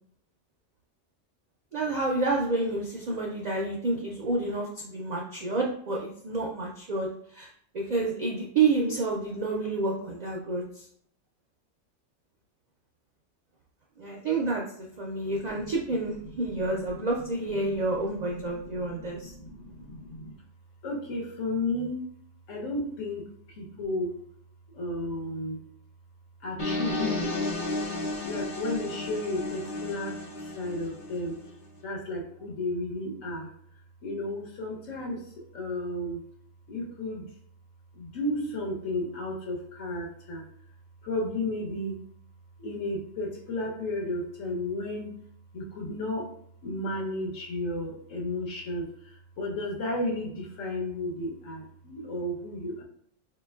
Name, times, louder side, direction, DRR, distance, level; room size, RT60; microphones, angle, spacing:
voice 1, 1.7-7.5 7.7-10.9 14.0-19.3, right 3 dB, 70° right, -1 dB, 0.4 m, -29 dB
voice 2, 15.4-15.7 16.2-20.3 20.8-22.0 22.5-24.2 24.7-25.6 26.4-27.3 28.2-31.4 31.8-33.5 34.0-36.2 36.7-37.3 37.9-40.4 41.0-42.0 42.6-45.1 45.5-46.3 46.6-52.8, left 1 dB, 85° left, -1 dB, 1.3 m, -33 dB
sound 1, 26.6-31.5, left 2 dB, 45° left, 0.4 m, -33 dB
4.3 x 2.8 x 2.3 m, 0.64 s
omnidirectional pair, 1.3 m